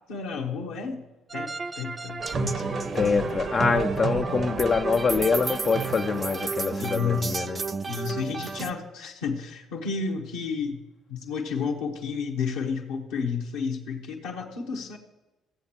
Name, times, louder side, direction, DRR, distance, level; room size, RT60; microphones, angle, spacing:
voice 1, 0.1-1.0 1.3-3.3 6.7-7.6 7.9-10.8 11.1-15.0, left 5 dB, 75° left, -2 dB, 1.1 m, -31 dB
sound 1, 1.3-8.7, right 4 dB, 30° right, 0.5 m, -33 dB
sound 2, 2.2-7.3, right 5 dB, 50° right, 1.0 m, -33 dB
voice 2, 2.9-7.6, left 5 dB, 45° left, 6 dB, 0.4 m, -25 dB
15.5 x 7.9 x 2.9 m, 1.1 s
hypercardioid pair, 50°, 0 cm